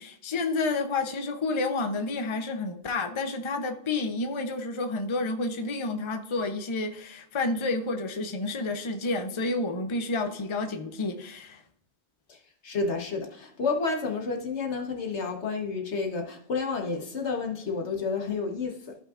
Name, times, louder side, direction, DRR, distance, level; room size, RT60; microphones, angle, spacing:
voice 1, 0.0-11.6, left 3 dB, 30° left, 0.7 m, -30 dB
voice 2, 12.6-19.0, left 4 dB, 75° left, 1.5 m, -30 dB
14.5 x 5.6 x 2.5 m
omnidirectional pair, 1.2 m